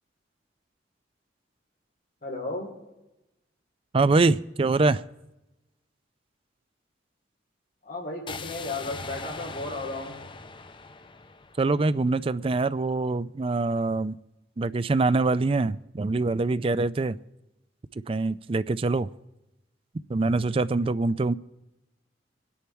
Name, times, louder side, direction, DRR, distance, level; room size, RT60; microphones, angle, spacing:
voice 1, 2.2-2.7 7.8-10.2, left 2 dB, 50° left, 3.1 m, -34 dB
voice 2, 3.9-5.0 11.6-14.2 14.6-17.2 18.1-19.1 20.1-21.3, right 3 dB, 30° right, 0.4 m, -24 dB
sound 1, 8.3-12.3, left 4 dB, 25° left, 0.6 m, -41 dB
23.5 x 10.0 x 4.6 m
head